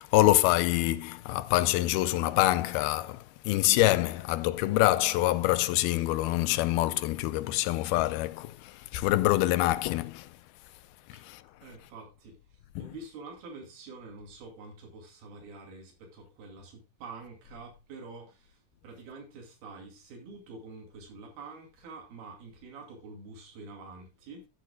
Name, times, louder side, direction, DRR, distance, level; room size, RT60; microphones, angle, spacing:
voice 1, 0.0-10.3 11.1-11.4 12.8-13.0, left 16 dB, 90° left, 2.5 m, -26 dB
voice 2, 11.6-24.5, right 3 dB, 85° right, 4.3 m, -47 dB
14.0 x 8.1 x 2.2 m
omnidirectional pair, 4.3 m